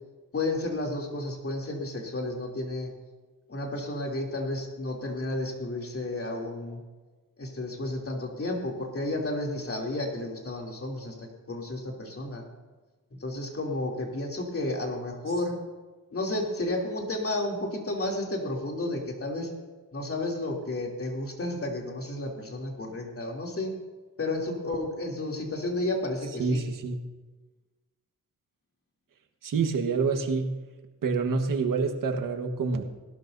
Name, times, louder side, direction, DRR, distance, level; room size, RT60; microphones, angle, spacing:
voice 1, 0.3-2.9 3.5-6.8 7.4-12.4 13.2-15.6 16.1-19.5 19.9-23.7 24.2-26.6, left 2 dB, 40° left, 0 dB, 3.1 m, -32 dB
voice 2, 26.4-27.0 29.4-30.5 31.0-32.8, right 4 dB, 70° right, 4 dB, 1.5 m, -27 dB
19.0 x 12.5 x 2.7 m, 1.3 s
cardioid pair, 80°, 33 cm